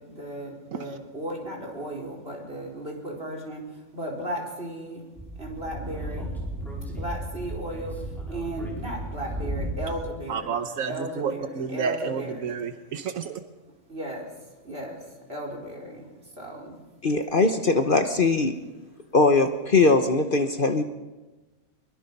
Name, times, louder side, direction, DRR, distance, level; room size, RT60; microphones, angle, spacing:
voice 1, 0.0-3.7 3.9-5.0 5.4-6.3 6.9-10.5 10.9-12.5 13.9-14.3 14.6-15.0 15.3-16.1 16.4-16.8, right 1 dB, 45° right, -1 dB, 4.5 m, -35 dB
Speech / Wind, 5.2-10.1, right 1 dB, ahead, 4.8 m, -34 dB
voice 2, 10.3-13.4, right 6 dB, 80° right, 8 dB, 1.4 m, -31 dB
voice 3, 17.0-18.5 19.1-20.8, left 3 dB, 40° left, 7 dB, 1.2 m, -21 dB
23.0 x 22.0 x 5.5 m, 1.2 s
omnidirectional pair, 1.4 m